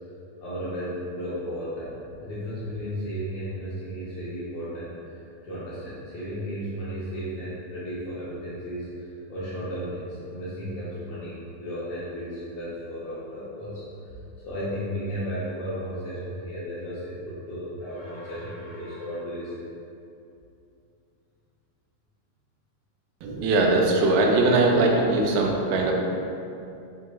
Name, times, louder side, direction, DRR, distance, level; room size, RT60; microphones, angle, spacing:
voice 1, 0.4-1.9 2.2-13.8 14.4-19.5, equal, 80° left, -10 dB, 1.7 m, -34 dB
voice 2, 23.2-25.9, right 2 dB, 85° right, 0 dB, 2.3 m, -21 dB
6.2 x 2.8 x 2.2 m, 2.7 s
omnidirectional pair, 4.1 m